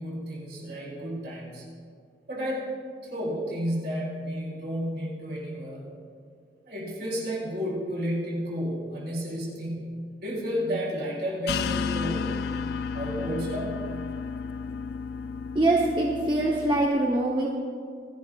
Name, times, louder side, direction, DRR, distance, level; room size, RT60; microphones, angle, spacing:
voice 1, 0.0-1.6 2.3-2.6 3.1-5.9 6.6-12.3 12.9-13.7, equal, 60° right, -4 dB, 3.8 m, -32 dB
sound 1, 11.5-16.9, left 5 dB, 60° left, 0.3 m, -32 dB
voice 2, 15.5-17.5, right 2 dB, 25° right, -2 dB, 0.9 m, -23 dB
26.5 x 10.5 x 2.4 m, 2.2 s
head